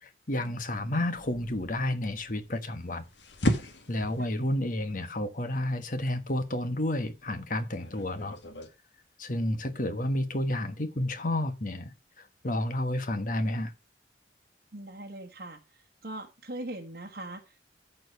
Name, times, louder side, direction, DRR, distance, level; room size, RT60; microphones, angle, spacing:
voice 1, 0.0-3.0 3.9-8.4 9.2-13.7, left 1 dB, 45° left, 1.3 m, -31 dB
sound 1, 1.1-8.7, left 1 dB, 85° left, 1.9 m, -37 dB
voice 2, 14.7-15.6 16.0-17.6, right 1 dB, 60° right, 1.3 m, -40 dB
13.5 x 4.7 x 5.0 m
head